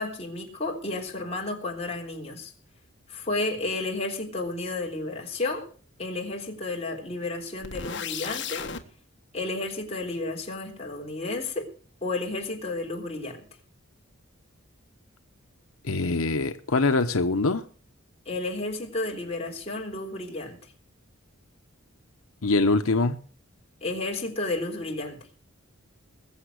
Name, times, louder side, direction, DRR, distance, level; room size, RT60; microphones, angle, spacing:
voice 1, 0.0-2.5 3.1-5.7 6.0-8.7 9.3-11.7 12.0-13.4 18.3-20.6 23.8-25.2, left 2 dB, 30° left, 3.4 m, -32 dB
sound 1, 7.6-8.8, left 7 dB, 55° left, 1.5 m, -34 dB
voice 2, 15.8-17.6 22.4-23.2, left 3 dB, 90° left, 1.0 m, -23 dB
21.0 x 7.3 x 6.5 m
head